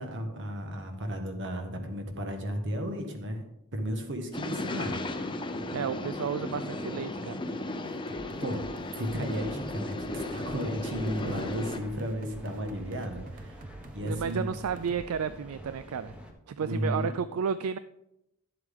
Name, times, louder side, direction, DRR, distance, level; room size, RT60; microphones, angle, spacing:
voice 1, 0.0-3.4 3.7-5.0 8.4-13.6 13.9-14.5 16.6-17.1, equal, 60° right, 5 dB, 1.6 m, -34 dB
sound 1, 4.3-11.8, left 2 dB, 20° left, 0.7 m, -35 dB
voice 2, 5.7-7.4 11.2-11.5 14.0-16.2 16.5-17.8, right 6 dB, 75° right, 13 dB, 0.4 m, -32 dB
sound 2, 7.8-15.1, right 1 dB, 40° right, 0.7 m, -47 dB
Mechanical fan, 10.8-16.3, equal, 5° right, 1.2 m, -48 dB
11.5 x 7.6 x 3.7 m, 0.84 s
head